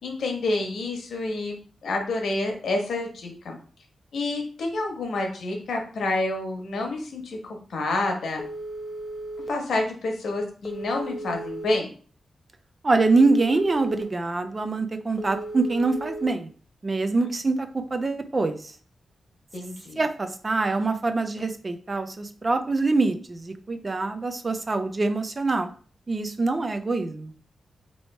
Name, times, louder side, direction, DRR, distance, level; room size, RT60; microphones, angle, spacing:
voice 1, 0.0-3.6 4.1-8.4 9.5-11.9 17.2-17.3 19.5-20.0, left 2 dB, 80° left, 2 dB, 1.0 m, -28 dB
Telephone, 8.4-9.5 10.6-11.7 12.9-14.0 15.2-16.3, right 1 dB, 20° left, 0.6 m, -35 dB
voice 2, 12.8-16.5 16.8-18.7 20.0-25.7 26.1-27.3, right 3 dB, 25° right, 7 dB, 0.4 m, -24 dB
3.0 x 2.8 x 4.3 m, 0.41 s
wide cardioid pair, 145°, 0 cm